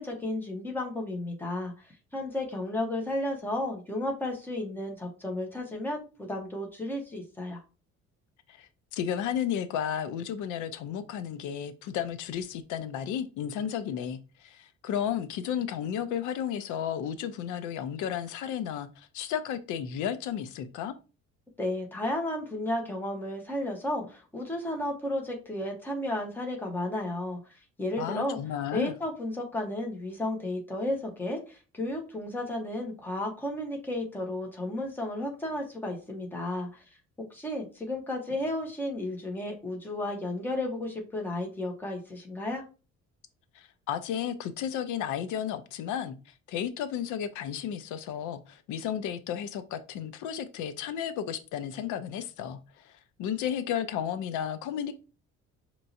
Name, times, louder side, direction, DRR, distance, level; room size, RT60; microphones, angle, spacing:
voice 1, 0.0-7.6 21.6-28.4 28.7-36.8 37.3-42.6, left 1 dB, 5° left, 0.9 m, -33 dB
voice 2, 8.5-20.9 28.0-29.0 43.5-54.9, left 9 dB, 90° left, 0.6 m, -33 dB
5.5 x 3.0 x 2.6 m
cardioid pair, 175°, 29 cm